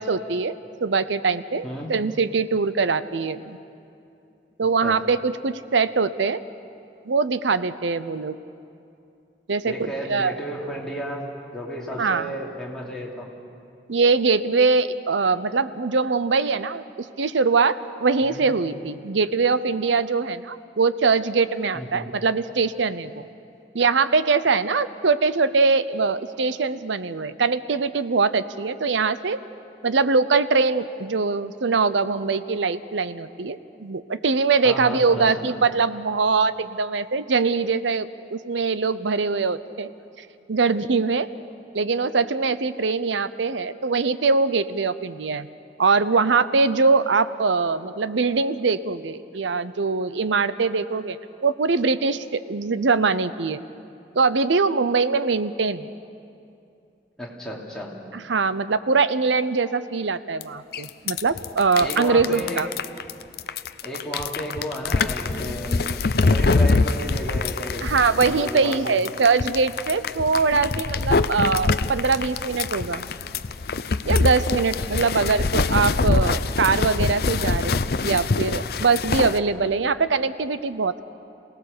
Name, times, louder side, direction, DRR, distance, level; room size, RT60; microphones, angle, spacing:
voice 1, 0.0-3.6 4.6-6.4 7.1-8.4 9.5-10.3 12.0-12.3 13.9-23.3 23.7-29.4 29.8-39.9 40.2-41.3 41.7-45.5 45.8-53.6 54.1-55.9 58.3-62.7 67.8-73.1 74.0-81.0, right 4 dB, 90° right, 14 dB, 0.7 m, -22 dB
voice 2, 9.6-11.2 11.5-13.3 18.3-18.7 21.7-22.1 34.6-35.5 57.2-57.9 61.8-62.6 63.8-67.9 68.1-69.0 75.0-75.1, equal, 5° left, -5 dB, 3.0 m, -33 dB
sound 1, 60.4-60.5 60.7-79.4, left 3 dB, 55° left, 0.6 m, -24 dB
27.5 x 18.0 x 6.8 m, 2.6 s
head